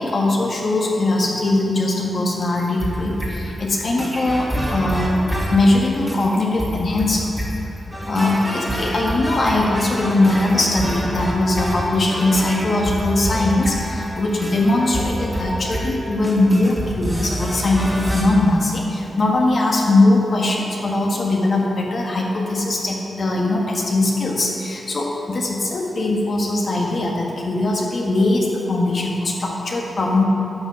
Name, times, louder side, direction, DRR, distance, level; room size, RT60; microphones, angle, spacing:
voice 1, 0.0-7.3 8.1-30.2, left 2 dB, 50° left, -2 dB, 1.6 m, -20 dB
sound 1, 2.6-18.2, equal, 5° right, 2.1 m, -27 dB
11.0 x 6.0 x 7.5 m, 3.0 s
wide cardioid pair, 105°, 0 cm